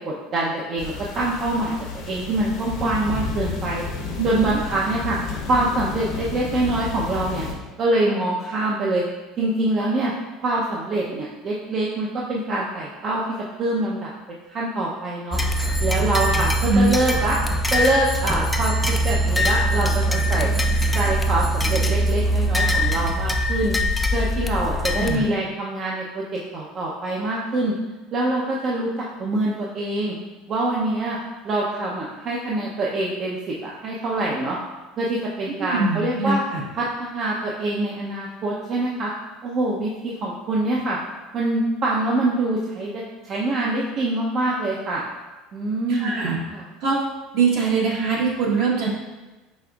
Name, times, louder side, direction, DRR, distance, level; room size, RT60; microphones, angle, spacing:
voice 1, 0.0-1.7 2.1-3.8 4.2-5.2 5.5-7.5 7.8-9.0 9.4-10.1 10.4-13.2 13.6-15.4 15.8-17.4 17.7-20.5 20.9-23.7 24.1-26.2 26.5-27.7 28.1-28.9 29.2-30.1 30.5-31.2 31.4-34.6 35.0-36.4 36.7-39.1 39.4-41.0 41.3-45.0 45.5-46.2 46.5-46.7, right 2 dB, 40° right, -4 dB, 0.6 m, -25 dB
sound 1, 0.8-7.5, left 4 dB, 60° left, 0.8 m, -31 dB
voice 2, 4.2-4.6 16.6-16.9 24.9-25.2 35.7-36.6 45.9-46.4 46.8-47.0 47.3-48.9, right 4 dB, 60° right, -3 dB, 1.2 m, -22 dB
sound 2, 15.3-25.2, equal, 10° left, 0.3 m, -22 dB
5.3 x 3.3 x 2.3 m, 1.2 s
supercardioid pair, 110°, 0 cm